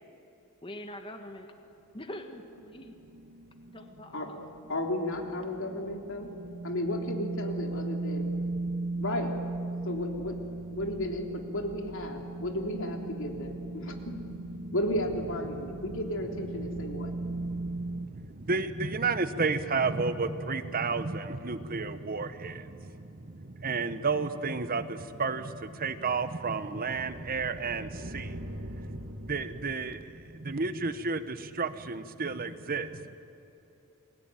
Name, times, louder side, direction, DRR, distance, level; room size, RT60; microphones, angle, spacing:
voice 1, 0.6-1.5 1.9-2.9 3.7-4.4, left 1 dB, 25° left, 5 dB, 1.6 m, -43 dB
sound 1, 2.5-18.1, right 2 dB, 90° right, 2.0 m, -38 dB
voice 2, 4.7-6.3 6.6-8.4 9.0-9.3 9.8-10.4 10.7-14.1 14.7-17.1, left 1 dB, 60° left, 3 dB, 3.5 m, -33 dB
voice 3, 16.7-33.2, right 4 dB, 40° right, 11 dB, 1.1 m, -32 dB
sound 2, 25.1-30.7, equal, 70° right, 2.0 m, -44 dB
30.0 x 21.5 x 9.2 m, 3.0 s
head